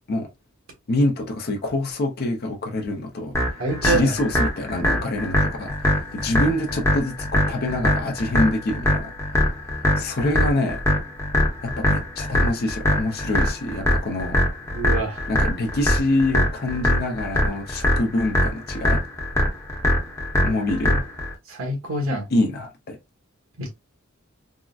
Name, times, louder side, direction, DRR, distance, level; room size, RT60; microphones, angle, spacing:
voice 1, 0.9-9.5 10.0-10.8 11.6-14.4 15.3-19.0 20.4-21.0 22.3-23.0, left 2 dB, 50° left, 0.7 m, -26 dB
sound 1, 3.3-21.3, left 1 dB, 15° left, 0.9 m, -22 dB
voice 2, 3.6-4.1 14.7-15.2 20.4-20.5 21.5-22.3 23.6-23.7, right 2 dB, 75° right, 1.4 m, -26 dB
3.7 x 2.1 x 2.4 m
head